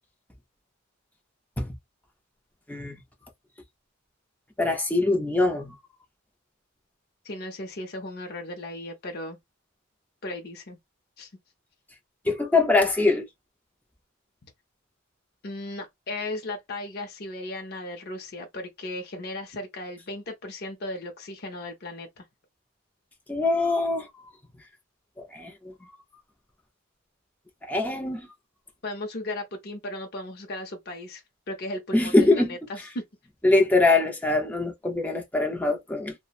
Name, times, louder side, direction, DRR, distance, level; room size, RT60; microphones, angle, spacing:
voice 1, 2.7-3.0 4.6-5.7 12.3-13.2 23.3-24.1 25.3-25.7 27.7-28.3 31.9-32.6 33.4-36.1, left 2 dB, 5° left, 0.5 m, -23 dB
voice 2, 7.2-9.4 10.2-10.8 11.2-11.3 14.4-14.5 15.4-22.2 28.8-33.0, left 1 dB, 50° left, 0.6 m, -36 dB
2.8 x 2.1 x 2.4 m
head